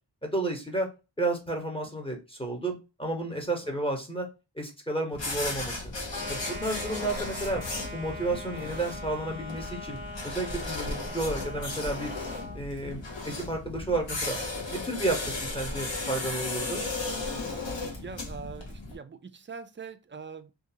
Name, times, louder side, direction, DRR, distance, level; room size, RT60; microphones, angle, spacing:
voice 1, 0.2-0.9 1.2-4.3 4.6-5.8 6.3-7.6 7.9-10.0 10.2-12.1 12.5-14.4 14.7-16.8, right 2 dB, 10° left, 1.0 m, -32 dB
sound 1, 5.1-18.9, left 2 dB, 75° left, 1.0 m, -35 dB
sound 2, 6.1-12.6, left 1 dB, 50° left, 0.9 m, -41 dB
voice 2, 18.0-20.5, right 5 dB, 30° right, 0.3 m, -43 dB
2.6 x 2.5 x 2.7 m
wide cardioid pair, 40°, 45 cm